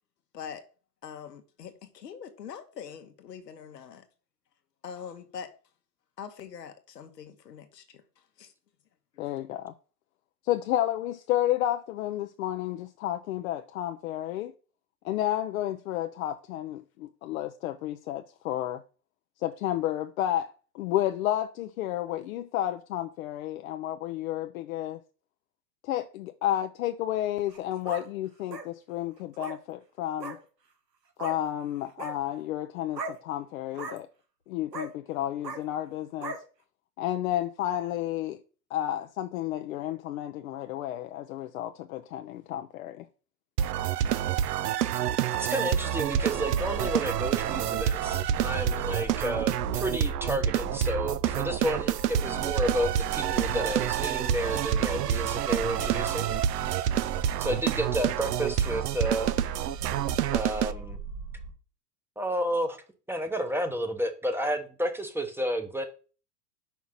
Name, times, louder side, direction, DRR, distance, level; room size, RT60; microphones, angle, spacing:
voice 1, 0.3-0.7 1.0-4.0 4.8-5.5 6.2-8.5 9.3-9.4, left 7 dB, 80° left, 1.3 m, -43 dB
voice 2, 9.2-9.7 10.5-14.5 15.0-18.8 19.4-25.0 25.8-30.4 31.2-34.1 34.5-36.3 37.0-38.4 38.7-43.0, left 12 dB, 60° left, 0.7 m, -31 dB
sound 1, 27.4-28.0 28.5-28.7 29.3-29.6 30.2-30.4 31.2-31.4 31.9-32.1 32.9-33.2 33.7-34.0 34.7-34.9 35.4-35.6 36.2-36.4, right 4 dB, 90° right, 1.5 m, -37 dB
sound 2, 43.6-60.7, right 10 dB, 75° right, 0.7 m, -28 dB
voice 3, 45.4-56.3 57.4-59.4 60.3-61.0 62.2-62.8 63.1-65.8, equal, 5° right, 0.9 m, -31 dB
sound 3, 46.0-61.5, right 4 dB, 45° right, 2.1 m, -38 dB
5.8 x 4.7 x 5.7 m
hypercardioid pair, 95°, 48 cm